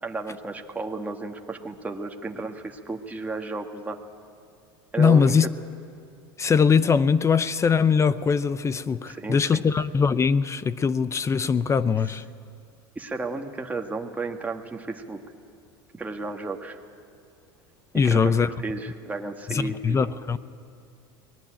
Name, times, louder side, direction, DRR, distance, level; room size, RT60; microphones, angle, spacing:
voice 1, 0.0-4.0 4.9-5.3 9.1-9.6 12.9-15.2 15.9-16.8 17.9-18.3 18.6-20.0, right 3 dB, 15° right, 2 dB, 1.7 m, -33 dB
voice 2, 5.0-5.5 6.4-12.2 17.9-18.5 19.5-20.4, left 6 dB, 25° left, 16 dB, 0.7 m, -21 dB
23.5 x 19.0 x 8.9 m, 2.4 s
supercardioid pair, 100°, 12 cm